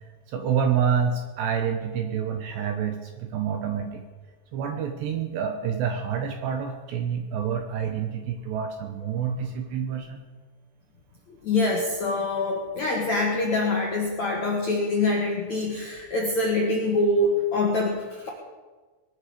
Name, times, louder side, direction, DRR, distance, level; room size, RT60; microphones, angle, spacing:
voice 1, 0.3-4.0 4.5-10.2, right 7 dB, 75° right, 5 dB, 2.8 m, -28 dB
voice 2, 11.4-18.3, left 2 dB, 60° left, -2 dB, 2.0 m, -25 dB
21.0 x 13.0 x 5.1 m, 1.3 s
omnidirectional pair, 5.9 m